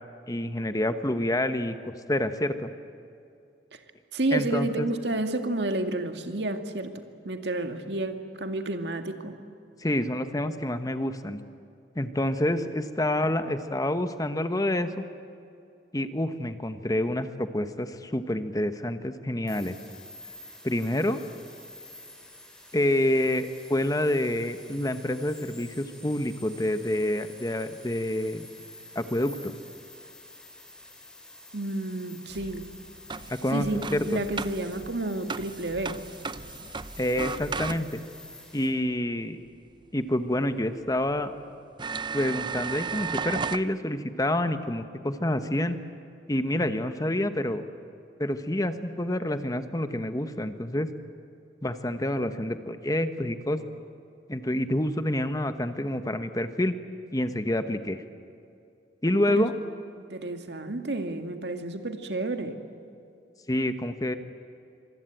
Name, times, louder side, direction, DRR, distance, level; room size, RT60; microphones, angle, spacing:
voice 1, 0.3-2.7 4.3-4.9 9.8-11.4 11.9-15.0 15.9-19.8 20.6-21.2 22.7-28.5 28.9-29.5 33.3-34.2 37.0-38.0 38.5-39.4 39.9-41.3 42.1-45.8 46.3-47.7 48.2-50.9 51.6-53.6 54.3-56.7 57.1-58.0 59.0-59.5 63.5-64.1, left 1 dB, 20° left, 9 dB, 1.2 m, -28 dB
voice 2, 4.1-6.9 7.2-9.4 31.5-32.6 33.5-36.0 59.3-59.5 60.1-62.6, right 2 dB, 70° right, 6 dB, 2.1 m, -30 dB
sound 1, 19.5-38.7, left 1 dB, 5° left, 4.9 m, -48 dB
sound 2, 32.3-38.2 40.3-40.4 41.1-41.2 41.8-43.7, right 5 dB, 25° right, 0.6 m, -35 dB
25.5 x 25.0 x 9.1 m, 2.5 s
head